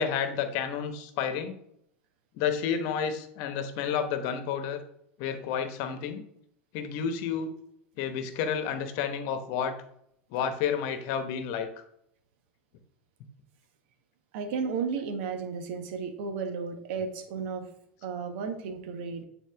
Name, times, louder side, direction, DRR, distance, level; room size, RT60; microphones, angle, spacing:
voice 1, 0.0-1.6 2.3-4.8 5.2-6.2 6.7-7.5 8.0-9.7 10.3-11.7, left 7 dB, 60° left, 9 dB, 1.0 m, -30 dB
voice 2, 14.3-17.7 18.0-19.2, right 5 dB, 65° right, 7 dB, 1.1 m, -33 dB
9.1 x 4.2 x 3.4 m, 0.72 s
hypercardioid pair, 85°, 7 cm